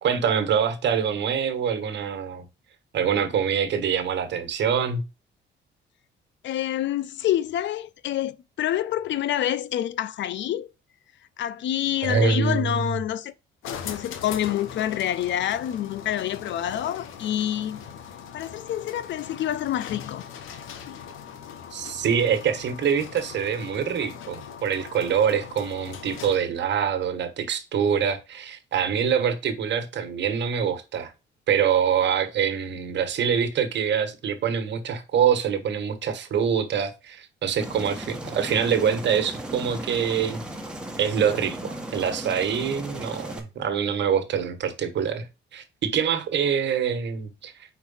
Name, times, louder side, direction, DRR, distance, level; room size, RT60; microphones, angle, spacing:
voice 1, 0.0-2.5 2.9-5.0 12.0-12.9 21.7-31.1 31.5-40.4 41.0-45.3 45.5-47.5, right 7 dB, 65° right, 1.3 m, -25 dB
voice 2, 6.4-10.7 11.4-13.3 13.8-17.8 18.3-20.3 20.9-21.0, left 11 dB, 65° left, 0.5 m, -27 dB
sound 1, 13.6-26.6, left 8 dB, 90° left, 0.9 m, -40 dB
Aircraft, 37.6-43.4, right 1 dB, 5° right, 1.5 m, -36 dB
4.7 x 4.5 x 5.5 m
cardioid pair, 90°, 20 cm